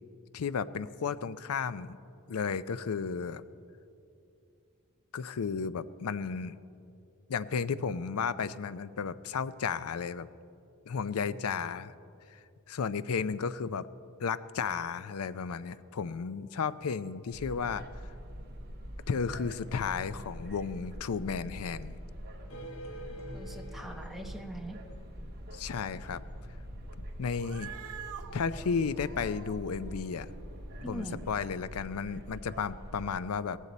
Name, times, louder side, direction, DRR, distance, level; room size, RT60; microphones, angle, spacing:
voice 1, 0.3-2.0 2.3-3.4 5.1-6.6 7.3-10.3 10.9-11.9 12.7-13.9 14.2-17.8 19.1-22.0 25.5-26.2 27.2-27.7 28.3-30.3 30.8-33.6, left 6 dB, 80° left, 15 dB, 0.5 m, -33 dB
sound 1, 17.3-33.2, equal, 50° right, 1.5 m, -45 dB
sound 2, 22.5-25.5, equal, 65° left, 1.5 m, -47 dB
voice 2, 23.1-24.8 30.8-31.2, right 1 dB, ahead, 2 dB, 1.0 m, -42 dB
Cat, 27.3-31.9, right 7 dB, 70° right, 0.9 m, -48 dB
17.5 x 14.5 x 4.2 m, 2.6 s
head